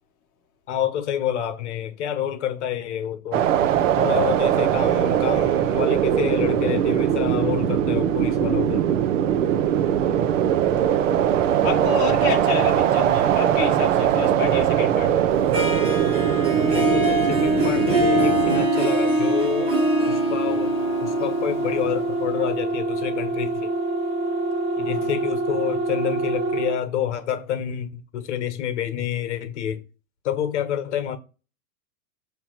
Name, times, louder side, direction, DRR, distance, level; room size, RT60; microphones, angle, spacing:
voice 1, 0.7-3.5 4.0-9.0 16.7-19.7 20.1-20.7 21.0-23.7 24.8-29.8 30.2-31.2, left 9 dB, 55° left, 1.2 m, -28 dB
sound 1, 3.3-18.7, right 10 dB, 60° right, 0.8 m, -21 dB
voice 2, 9.8-10.5 11.6-15.3 24.8-25.1, left 7 dB, 25° left, 1.4 m, -30 dB
Harp, 15.5-22.4, right 1 dB, 15° right, 0.8 m, -23 dB
sound 2, 17.8-26.8, right 2 dB, 35° right, 1.6 m, -26 dB
7.1 x 2.9 x 5.9 m
supercardioid pair, 175°, 43 cm